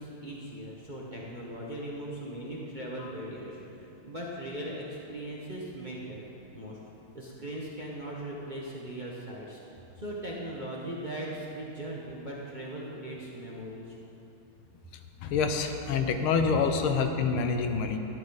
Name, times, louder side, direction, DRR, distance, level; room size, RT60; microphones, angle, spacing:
voice 1, 0.0-6.2 6.5-6.8 7.1-9.6 10.0-14.0, right 1 dB, 30° right, -5 dB, 0.9 m, -39 dB
voice 2, 15.2-18.0, left 5 dB, 85° left, 6 dB, 1.7 m, -27 dB
12.5 x 11.0 x 4.0 m, 2.9 s
omnidirectional pair, 2.3 m